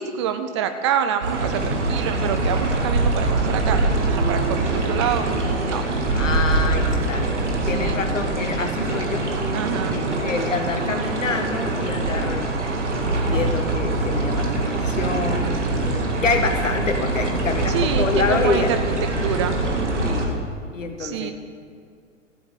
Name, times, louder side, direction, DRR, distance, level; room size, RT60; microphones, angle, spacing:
voice 1, 0.0-5.9 7.6-8.0 9.5-10.0 17.7-18.6 19.2-19.6 21.0-21.3, right 8 dB, 25° right, 8 dB, 0.4 m, -27 dB
sound 1, 1.2-20.3, right 2 dB, 60° right, 2.2 m, -23 dB
voice 2, 6.1-7.3 7.7-9.2 9.8-12.5 13.2-15.5 16.2-18.7 20.0-20.4 20.7-21.3, left 4 dB, 70° left, 6 dB, 1.6 m, -26 dB
14.5 x 7.9 x 7.6 m, 2.1 s
figure-of-eight pair, 105°, 39 cm